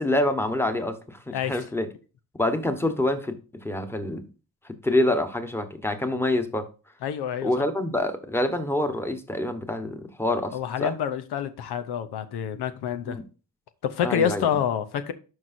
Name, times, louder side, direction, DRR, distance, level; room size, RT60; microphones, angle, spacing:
voice 1, 0.0-1.9 2.3-4.3 4.6-6.7 7.4-10.9 13.0-13.2 14.0-14.5, left 1 dB, 5° left, 1.2 m, -26 dB
voice 2, 7.0-7.5 10.5-13.2 13.8-15.1, left 9 dB, 90° left, 0.8 m, -27 dB
12.0 x 4.7 x 2.7 m
cardioid pair, 75°, 38 cm